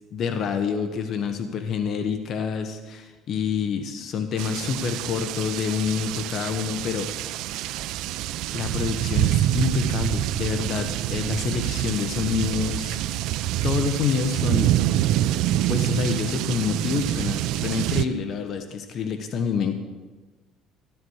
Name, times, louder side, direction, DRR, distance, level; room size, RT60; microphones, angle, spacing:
voice 1, 0.1-7.1 8.5-13.3 13.6-14.7 15.7-19.7, left 6 dB, 50° left, 7 dB, 1.2 m, -27 dB
sound 1, 4.4-18.1, right 13 dB, 70° right, 0.5 m, -26 dB
14.0 x 12.0 x 4.8 m, 1.2 s
cardioid pair, 110°, 0 cm